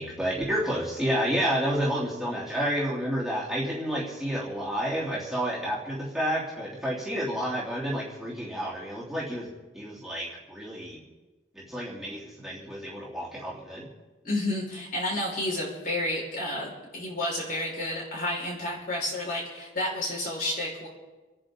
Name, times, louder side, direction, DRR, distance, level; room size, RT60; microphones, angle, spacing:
voice 1, 0.0-9.5 9.7-11.0 11.5-13.9, equal, ahead, -8 dB, 3.4 m, -30 dB
voice 2, 14.2-20.9, left 1 dB, 45° left, -4 dB, 5.4 m, -31 dB
29.0 x 10.5 x 3.9 m, 1.2 s
head